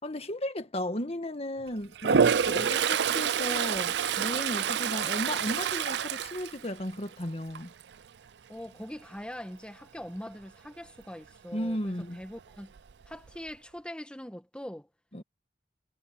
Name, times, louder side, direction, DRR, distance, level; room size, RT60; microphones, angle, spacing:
voice 1, 0.0-7.7 11.5-12.2 15.1-15.2, left 1 dB, 35° left, 1.7 m, -35 dB
Toilet flush, 1.9-7.1 7.5-7.9 12.4-12.5 12.8-13.5, right 7 dB, 70° right, 0.5 m, -27 dB
voice 2, 8.5-12.7 13.1-14.9, equal, 5° left, 1.5 m, -42 dB
head